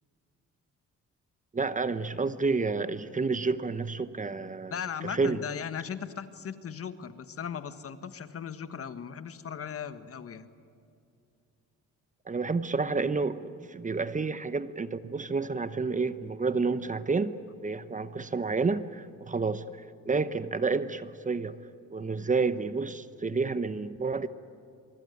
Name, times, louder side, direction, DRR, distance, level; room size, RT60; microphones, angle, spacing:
voice 1, 1.5-4.7 5.0-5.4 12.3-17.3 17.6-21.6 21.9-24.3, right 4 dB, 25° right, 13 dB, 1.0 m, -30 dB
voice 2, 4.7-10.5, left 7 dB, 50° left, 11 dB, 1.5 m, -38 dB
24.5 x 23.5 x 9.7 m, 2.5 s
cardioid pair, 90°, 30 cm